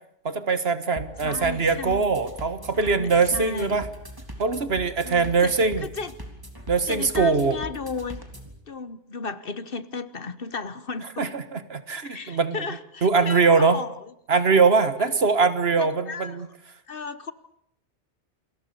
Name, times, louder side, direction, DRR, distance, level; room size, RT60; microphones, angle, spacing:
voice 1, 0.3-3.9 4.4-5.9 6.7-7.6 11.2-12.6 13.0-13.8 14.3-16.5, right 4 dB, 60° right, 12 dB, 1.7 m, -22 dB
sound 1, 1.0-8.6, equal, 20° right, 3.3 m, -41 dB
voice 2, 1.2-2.1 2.7-3.8 5.0-6.1 6.9-8.2 8.7-11.3 12.0-14.0 15.0-15.1 15.8-16.4 16.9-17.3, left 4 dB, 55° left, 14 dB, 1.3 m, -35 dB
28.5 x 21.5 x 6.9 m, 0.73 s
omnidirectional pair, 1.2 m